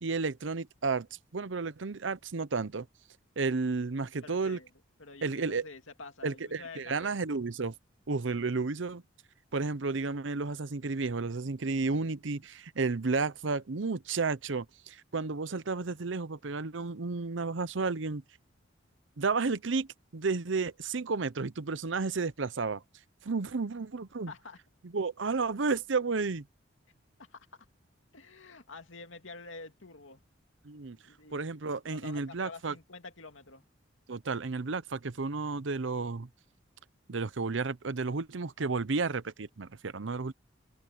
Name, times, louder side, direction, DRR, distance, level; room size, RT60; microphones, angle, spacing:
voice 1, 0.0-1.1 1.3-2.9 3.4-4.6 5.2-5.7 6.2-7.7 8.1-9.0 9.5-18.2 19.2-22.8 23.2-24.3 24.9-26.5 30.6-31.0 31.3-32.7 34.1-36.3 37.1-40.3, right 4 dB, 75° right, 0.8 m, -32 dB
voice 2, 4.2-4.7 5.0-7.2 8.1-8.4 24.3-24.6 27.2-27.7 28.1-30.2 31.0-31.5 31.9-33.6, left 3 dB, 90° left, 2.5 m, -48 dB
open air
head